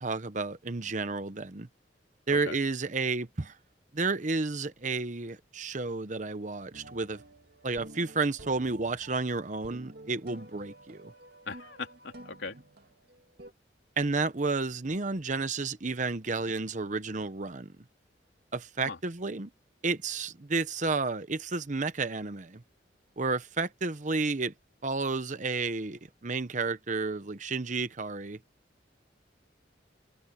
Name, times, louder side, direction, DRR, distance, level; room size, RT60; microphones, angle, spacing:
voice 1, 0.0-1.7 2.3-3.6 3.9-7.2 7.6-11.1 14.0-17.7 18.5-19.5 19.8-22.6 23.2-24.5 24.8-28.4, right 3 dB, 45° right, 0.9 m, -31 dB
sound 1, 6.7-13.5, right 1 dB, 60° right, 2.6 m, -51 dB
voice 2, 11.4-12.6 18.8-19.0, left 4 dB, 90° left, 3.4 m, -39 dB
head